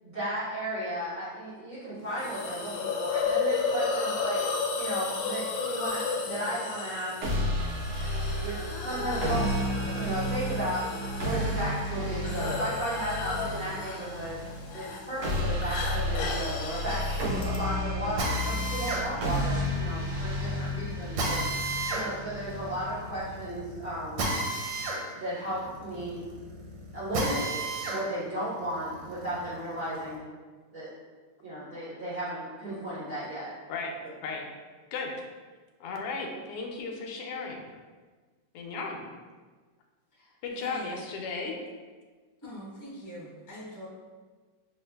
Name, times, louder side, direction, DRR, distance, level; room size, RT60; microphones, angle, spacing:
voice 1, 0.0-4.4 4.7-7.5 8.4-9.5 9.9-14.4 14.7-21.4 21.9-24.2 25.1-26.2 26.9-30.3 30.7-30.9 31.4-33.5, right 1 dB, 45° right, -13 dB, 1.5 m, -34 dB
Hiss, 2.2-17.6, left 4 dB, 85° left, 1.4 m, -34 dB
sound 1, 7.2-23.2, left 1 dB, 65° right, 1.1 m, -32 dB
Drill, 18.2-28.0 28.5-30.1, right 2 dB, 90° right, 1.4 m, -33 dB
voice 2, 35.8-37.6 38.5-39.0 40.4-41.5, left 4 dB, 70° left, 0 dB, 1.1 m, -35 dB
voice 3, 40.1-41.0 42.4-43.9, equal, 15° left, -7 dB, 0.6 m, -44 dB
5.6 x 2.5 x 2.2 m, 1.4 s
omnidirectional pair, 2.1 m